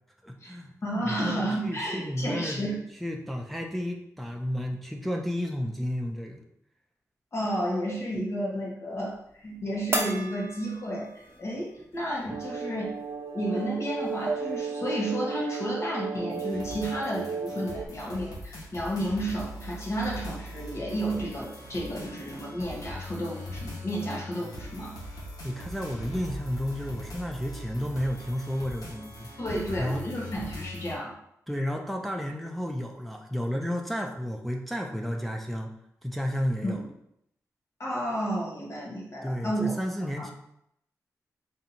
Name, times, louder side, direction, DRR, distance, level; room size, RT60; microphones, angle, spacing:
voice 1, 0.2-2.6 3.0-6.4 12.3-12.4 25.4-29.3 29.8-30.1 31.5-35.7 36.0-36.8 39.2-40.3, equal, ahead, 1 dB, 0.4 m, -32 dB
voice 2, 0.8-2.8 7.3-12.9 13.3-25.0 29.4-31.1 36.6-36.8 37.8-39.7 40.2-40.3, equal, 45° left, -3 dB, 1.1 m, -32 dB
sound 1, 9.9-11.5 11.9-12.0 13.6-13.7 14.0-14.6, right 2 dB, 40° right, 0.9 m, -33 dB
sound 2, 12.3-17.9, right 5 dB, 65° right, 0.4 m, -35 dB
sound 3, 16.3-30.9, left 1 dB, 80° left, 1.0 m, -41 dB
3.9 x 2.7 x 4.2 m, 0.76 s
wide cardioid pair, 125°, 6 cm